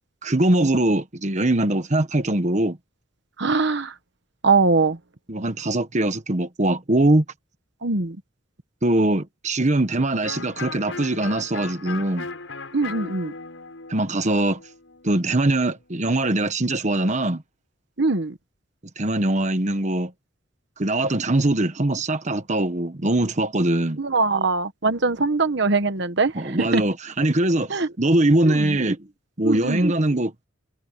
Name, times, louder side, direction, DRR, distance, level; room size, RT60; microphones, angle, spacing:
voice 1, 0.2-2.8 5.3-7.2 8.8-12.3 13.9-14.6 15.0-17.4 19.0-20.1 20.8-24.0 26.3-29.1 29.4-30.3, right 1 dB, 40° right, 1.2 m, -22 dB
voice 2, 3.4-3.9 4.4-5.0 7.8-8.2 12.7-13.3 18.0-18.4 24.0-26.8 27.7-27.9 28.4-28.8 29.4-29.9, right 3 dB, 65° right, 1.2 m, -22 dB
Electric guitar, 10.2-15.8, left 4 dB, 85° left, 6.1 m, -37 dB
head